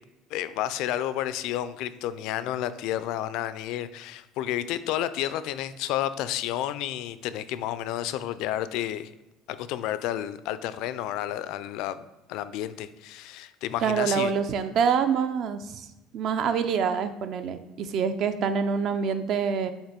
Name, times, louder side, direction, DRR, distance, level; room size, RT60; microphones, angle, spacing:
voice 1, 0.3-9.1 9.5-14.3, left 12 dB, 65° left, 14 dB, 0.4 m, -31 dB
voice 2, 13.8-15.6 16.1-19.7, right 6 dB, 45° right, 9 dB, 0.4 m, -26 dB
7.3 x 3.0 x 5.1 m, 1.0 s
cardioid pair, 160°, 0 cm